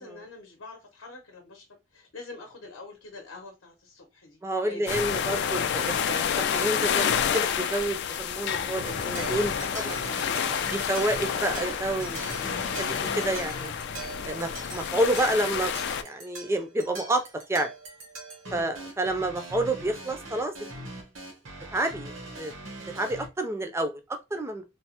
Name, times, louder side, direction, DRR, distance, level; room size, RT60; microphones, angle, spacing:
voice 1, 0.0-4.8 10.4-10.8 18.4-18.7, left 3 dB, 75° left, 0.7 m, -45 dB
voice 2, 4.4-10.2 10.7-13.7 14.2-15.7 16.0-17.2 17.5-17.7 18.5-20.7 21.7-22.1 22.4-22.5 22.9-24.6, right 1 dB, 15° right, 0.4 m, -29 dB
sound 1, 4.9-16.0, left 8 dB, 55° left, 0.3 m, -29 dB
sound 2, 8.9-23.3, right 2 dB, 75° right, 1.0 m, -41 dB
3.2 x 2.0 x 2.8 m
head